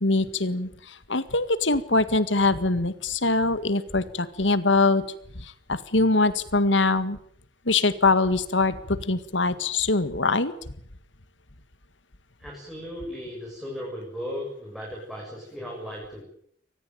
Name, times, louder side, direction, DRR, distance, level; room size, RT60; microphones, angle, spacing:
voice 1, 0.0-5.0 5.4-7.2 7.7-10.5, left 3 dB, 85° left, 14 dB, 1.9 m, -23 dB
voice 2, 12.4-16.2, equal, ahead, -3 dB, 7.4 m, -36 dB
24.5 x 19.5 x 9.4 m, 0.65 s
head